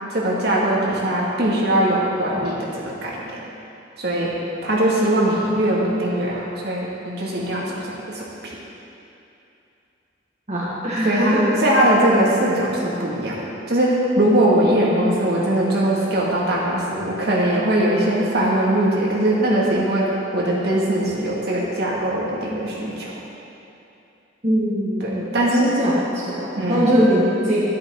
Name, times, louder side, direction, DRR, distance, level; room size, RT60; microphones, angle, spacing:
voice 1, 0.1-3.4 4.0-4.4 4.6-8.5 11.0-11.3 11.6-23.1 25.0-25.7 26.5-26.9, right 1 dB, 55° right, -5 dB, 2.2 m, -21 dB
voice 2, 10.5-11.5 24.4-27.7, equal, 35° right, -8 dB, 1.7 m, -21 dB
12.5 x 11.5 x 3.8 m, 2.8 s
head